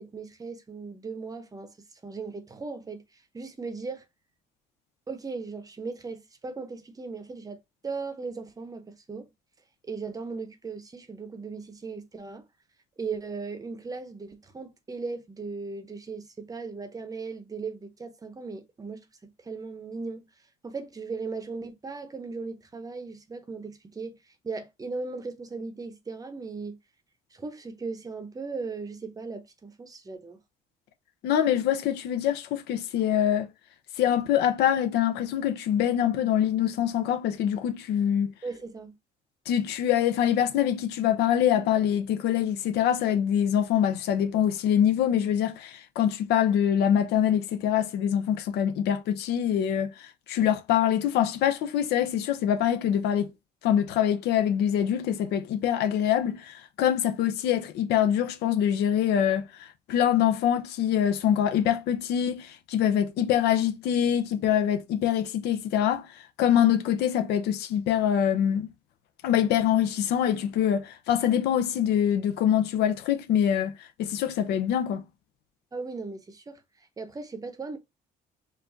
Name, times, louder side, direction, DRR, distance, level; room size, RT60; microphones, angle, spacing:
voice 1, 0.0-4.0 5.1-9.3 9.8-12.4 13.0-20.3 20.6-24.2 24.4-26.8 27.3-30.4 38.4-39.0 75.7-77.8, right 4 dB, 20° right, 0.7 m, -37 dB
voice 2, 31.2-33.5 34.0-38.3 39.5-53.3 53.6-66.1 66.4-68.7 69.2-75.0, left 10 dB, 80° left, 0.6 m, -24 dB
4.7 x 2.5 x 2.6 m
cardioid pair, 110°, 17 cm